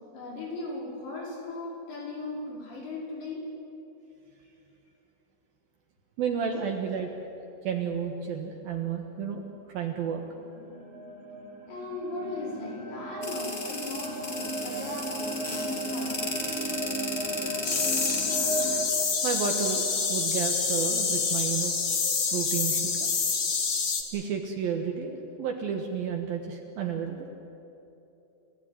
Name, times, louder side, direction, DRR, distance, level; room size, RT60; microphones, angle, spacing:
voice 1, 0.1-3.5 11.7-16.6, left 2 dB, 85° left, -2 dB, 7.4 m, -38 dB
voice 2, 6.2-7.1 7.6-9.4 9.7-10.2 19.2-21.7 22.3-23.1 24.1-27.3, right 7 dB, 65° right, 2 dB, 3.0 m, -31 dB
sound 1, 10.2-18.9, right 1 dB, 40° right, 3.7 m, -35 dB
sound 2, 13.2-18.2, left 2 dB, 25° left, 2.7 m, -35 dB
sound 3, 17.6-24.0, left 5 dB, 40° left, 1.8 m, -27 dB
29.5 x 15.5 x 9.8 m, 3.0 s
omnidirectional pair, 5.0 m